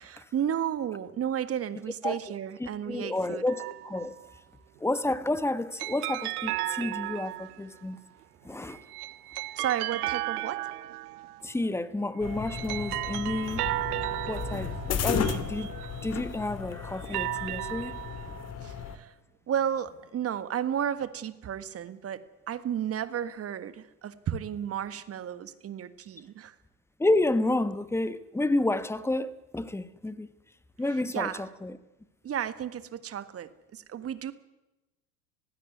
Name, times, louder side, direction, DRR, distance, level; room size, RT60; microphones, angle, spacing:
voice 1, 0.0-3.4 9.6-10.7 18.6-19.1 19.5-26.5 30.9-31.4 32.2-34.3, right 9 dB, 30° right, 1.6 m, -33 dB
voice 2, 2.6-4.2 4.8-8.0 8.4-8.8 11.4-13.6 14.3-15.7 16.0-18.0 27.0-30.3 30.8-31.8, left 2 dB, 5° left, 1.2 m, -30 dB
sound 1, 3.5-4.2 5.8-7.8 8.7-11.5 12.2-16.3 16.9-18.5, right 18 dB, 65° right, 1.0 m, -35 dB
sound 2, 12.2-19.0, left 6 dB, 30° left, 2.4 m, -34 dB
20.0 x 16.0 x 9.6 m
hypercardioid pair, 85°, 48 cm